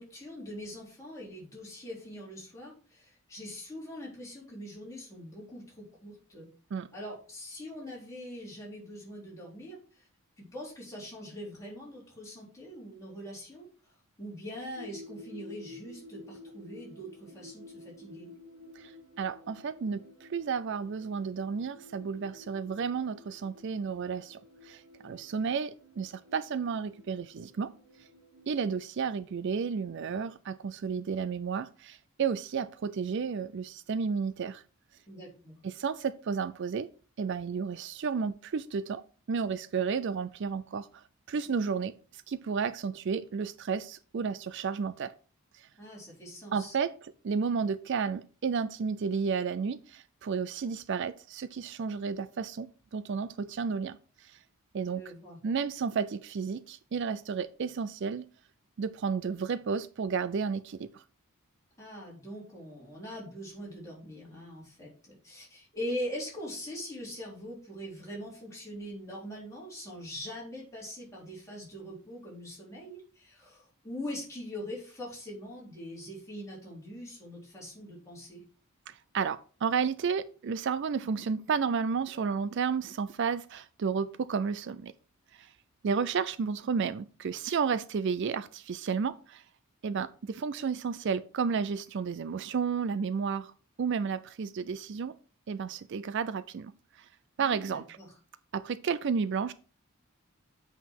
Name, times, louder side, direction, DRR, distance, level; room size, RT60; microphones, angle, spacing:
voice 1, 0.0-6.5 6.9-10.1 10.4-18.3 35.1-35.5 45.8-46.8 54.9-55.4 61.8-78.4 97.4-98.1, equal, 15° left, 3.8 m, -42 dB
sound 1, 14.7-28.5, left 2 dB, 75° right, 2.6 m, -52 dB
voice 2, 19.2-27.7 28.5-34.6 35.6-36.9 37.2-39.0 39.3-45.1 45.5-45.7 46.5-54.4 54.7-55.0 55.4-58.3 58.8-61.0 78.9-84.9 85.3-85.5 85.8-89.4 89.8-93.5 93.8-95.1 95.5-96.7 97.0-97.1 97.4-98.0 98.5-99.5, right 6 dB, 55° right, 0.4 m, -32 dB
8.1 x 5.6 x 4.6 m
head